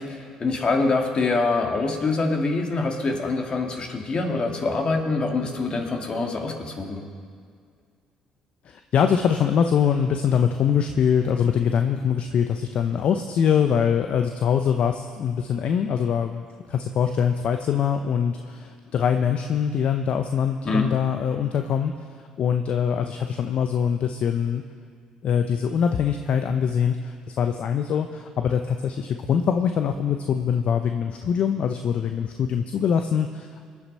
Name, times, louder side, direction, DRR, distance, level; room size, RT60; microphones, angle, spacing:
voice 1, 0.0-7.0 20.6-20.9, left 3 dB, 40° left, 2 dB, 2.6 m, -25 dB
voice 2, 8.6-21.9 22.4-24.6 25.2-33.6, left 7 dB, 55° left, 6 dB, 0.8 m, -23 dB
25.0 x 10.0 x 4.3 m, 2.1 s
hypercardioid pair, 60°, 2 cm